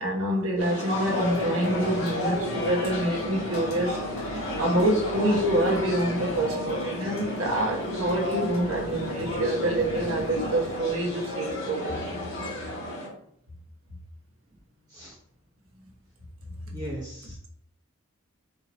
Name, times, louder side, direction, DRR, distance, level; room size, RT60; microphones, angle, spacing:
voice 1, 0.0-12.1, right 1 dB, 80° right, 1.0 m, -27 dB
sound 1, 0.6-13.1, left 1 dB, 60° left, 1.7 m, -32 dB
Water drops in metal sink, 0.9-12.4, equal, 75° left, 1.4 m, -38 dB
voice 2, 16.7-17.5, right 1 dB, 20° right, 0.8 m, -39 dB
4.3 x 2.9 x 4.0 m
head